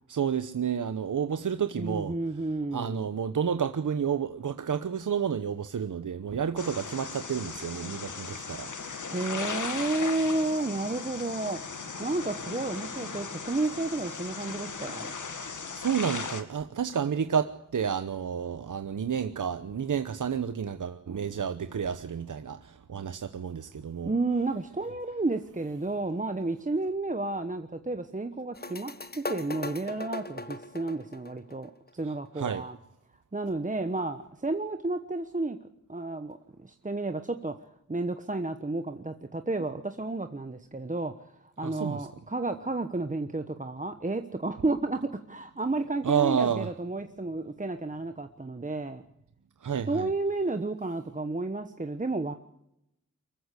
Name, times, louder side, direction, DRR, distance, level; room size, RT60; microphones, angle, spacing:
voice 1, 0.1-2.2 2.7-9.1 15.7-24.1 32.0-32.6 41.6-42.1 46.0-46.7 49.6-50.1, right 7 dB, 75° right, 1.0 m, -30 dB
voice 2, 1.8-3.1 9.1-11.6 12.0-15.1 24.0-32.8 33.3-35.6 35.9-37.5 37.9-45.0 45.3-49.0 49.9-52.3, right 2 dB, 25° right, 1.2 m, -31 dB
sound 1, 6.6-16.4, left 5 dB, 75° left, 2.3 m, -37 dB
sound 2, 28.5-32.0, left 2 dB, 30° left, 1.3 m, -39 dB
24.0 x 14.5 x 8.3 m
wide cardioid pair, 90°, 31 cm